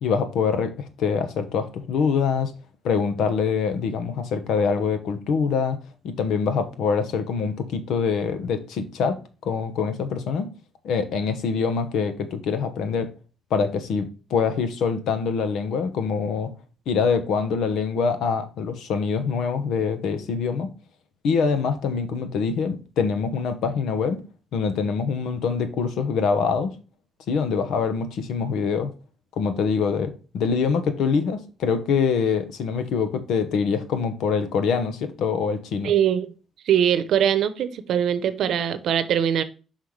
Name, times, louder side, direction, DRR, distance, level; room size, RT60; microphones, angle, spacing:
voice 1, 0.0-2.5 2.8-5.8 6.0-10.5 10.8-13.1 13.5-16.5 16.9-20.7 21.2-24.2 24.5-26.7 27.3-28.9 29.4-35.9, left 5 dB, 80° left, 1.2 m, -24 dB
voice 2, 35.8-36.3 36.6-39.4, right 9 dB, 70° right, 0.8 m, -22 dB
5.5 x 5.5 x 3.3 m
cardioid pair, 90°, 0 cm